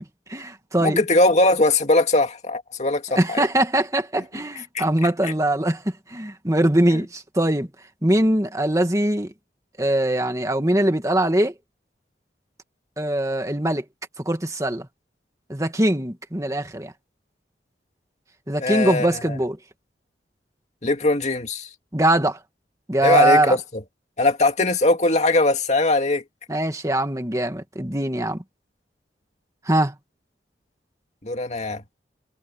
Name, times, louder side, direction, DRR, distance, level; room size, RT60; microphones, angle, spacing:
voice 1, 0.0-1.0 3.2-7.7 8.0-9.3 9.8-11.5 13.0-13.8 14.2-14.9 15.5-16.9 18.5-19.6 21.9-22.4 22.9-23.5 26.5-28.4 29.7-29.9, right 1 dB, 20° right, 2.2 m, -22 dB
voice 2, 0.8-3.4 4.7-4.8 18.6-19.4 20.8-21.7 23.0-23.6 24.2-26.2 31.2-31.8, left 2 dB, 40° left, 2.5 m, -20 dB
head